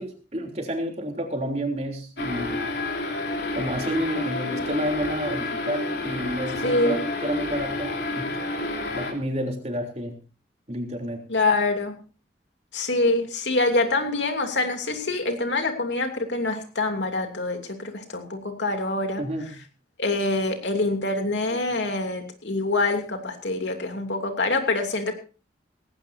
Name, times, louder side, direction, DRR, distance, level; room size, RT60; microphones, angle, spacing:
voice 1, 0.0-2.6 3.5-8.3 8.9-10.2 10.7-11.2 19.2-19.5, equal, 35° right, 2 dB, 3.4 m, -30 dB
sound 1, 2.2-9.1, left 2 dB, 70° left, 3.5 m, -29 dB
voice 2, 6.6-7.0 11.3-12.0 12.7-19.2 20.0-25.1, left 2 dB, 90° left, 5 dB, 2.9 m, -25 dB
18.5 x 17.0 x 2.7 m, 0.35 s
head